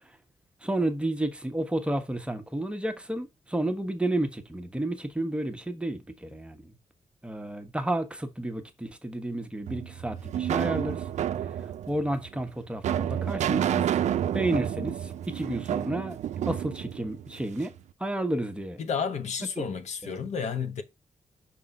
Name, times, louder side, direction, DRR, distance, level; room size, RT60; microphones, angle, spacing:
voice 1, 0.6-6.7 7.2-11.0 11.9-14.0 14.3-16.2 16.5-17.7 18.0-18.8 20.0-20.2, right 1 dB, 10° right, 1.0 m, -31 dB
sound 1, 9.7-17.8, right 10 dB, 75° right, 0.4 m, -30 dB
voice 2, 18.8-20.8, left 6 dB, 70° left, 1.0 m, -31 dB
6.1 x 3.7 x 5.3 m
wide cardioid pair, 125°, 12 cm